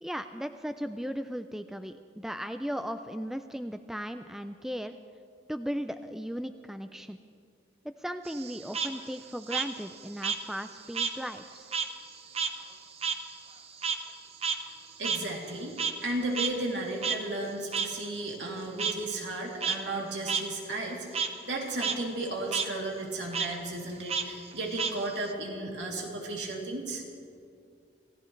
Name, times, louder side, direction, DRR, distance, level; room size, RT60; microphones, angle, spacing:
voice 1, 0.0-5.0 5.5-7.2 7.8-11.7, equal, ahead, 8 dB, 0.3 m, -37 dB
Frog, 8.3-11.2 11.5-16.1 16.4-16.5 17.0-17.2 17.7-17.9 18.8-18.9 19.5-19.8 20.3-20.4 20.8-21.3 21.7-22.0 22.3-22.7 23.3-23.5 24.1-25.3, right 6 dB, 35° right, 0.8 m, -31 dB
voice 2, 15.0-27.0, right 2 dB, 80° right, -2 dB, 3.0 m, -34 dB
27.5 x 16.0 x 3.2 m, 2.3 s
head